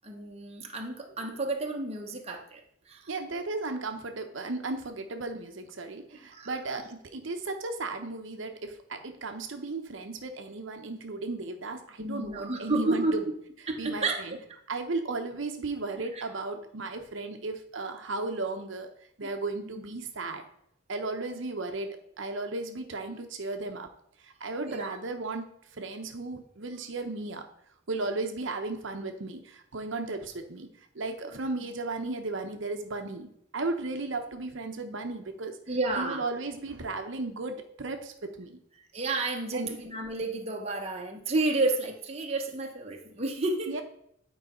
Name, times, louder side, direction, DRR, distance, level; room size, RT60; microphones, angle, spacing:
voice 1, 0.0-2.6 2.9-3.1 6.3-6.8 12.0-13.1 13.7-14.2 14.5-14.6 16.1-16.2 19.6-19.9 24.6-25.0 31.6-31.7 35.7-36.2 38.9-43.8, right 2 dB, 30° right, 2 dB, 0.9 m, -31 dB
voice 2, 3.1-13.2 13.8-14.4 14.7-18.9 19.2-20.4 20.9-23.9 24.2-27.4 27.9-30.7 30.9-35.6 36.0-38.6 39.5-39.8 43.7-43.8, right 3 dB, 60° right, 5 dB, 0.8 m, -35 dB
9.4 x 4.8 x 4.2 m, 0.72 s
head